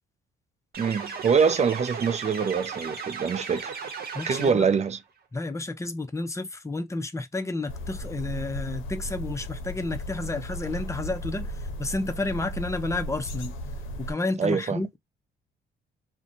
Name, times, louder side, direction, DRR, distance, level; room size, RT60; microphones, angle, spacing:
sound 1, 0.7-4.9, right 5 dB, 50° right, 0.9 m, -36 dB
voice 1, 0.8-3.8 4.3-5.0 14.4-14.8, right 6 dB, 35° right, 0.5 m, -24 dB
voice 2, 4.1-4.7 5.3-13.5 14.0-15.0, left 2 dB, 15° left, 0.6 m, -31 dB
sound 2, 7.7-14.1, equal, 85° left, 0.6 m, -35 dB
2.6 x 2.2 x 2.6 m
cardioid pair, 90°, 20 cm